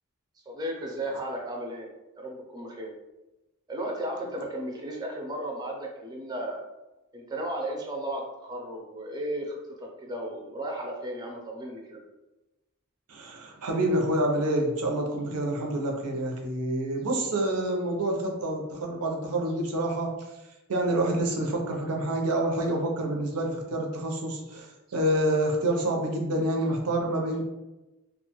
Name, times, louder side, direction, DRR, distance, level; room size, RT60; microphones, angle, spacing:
voice 1, 0.5-1.9 2.1-2.9 3.7-6.6 7.1-12.0, right 1 dB, 20° right, 0 dB, 0.4 m, -35 dB
voice 2, 13.1-20.3 20.7-27.4, right 1 dB, 90° right, 1 dB, 0.6 m, -27 dB
2.4 x 2.3 x 2.9 m, 1.0 s
head